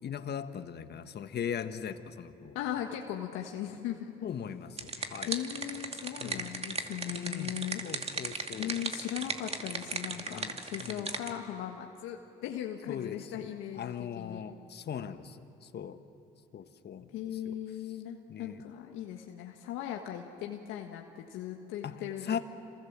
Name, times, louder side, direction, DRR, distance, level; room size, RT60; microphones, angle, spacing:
voice 1, 0.0-2.6 4.2-5.3 6.2-6.5 7.1-7.5 7.8-8.8 10.3-11.0 12.9-13.5 13.7-15.4 15.7-16.0 16.5-17.1 17.4-17.5 18.3-18.6 21.8-21.9 22.3-22.4, left 8 dB, 55° left, 9 dB, 1.6 m, -39 dB
voice 2, 2.5-4.1 4.9-7.8 8.5-14.4 17.1-22.4, left 11 dB, 80° left, 2 dB, 1.6 m, -38 dB
sound 1, 4.5-11.3, right 3 dB, 30° right, 2.4 m, -37 dB
28.0 x 26.5 x 7.4 m, 2.6 s
hypercardioid pair, 60°, 21 cm